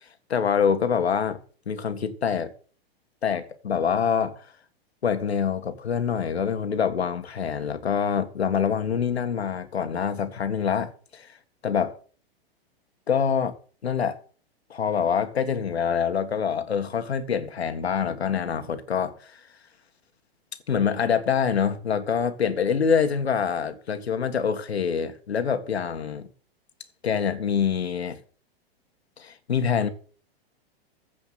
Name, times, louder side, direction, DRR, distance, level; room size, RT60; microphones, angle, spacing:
voice 1, 0.3-1.4 1.7-2.5 3.2-4.4 5.0-11.3 11.6-12.0 13.1-13.6 13.8-14.2 14.7-19.3 20.7-26.3 27.0-28.2 29.2-29.9, left 7 dB, 90° left, 1.8 m, -25 dB
15.5 x 5.3 x 7.5 m
hypercardioid pair, 120°, 31 cm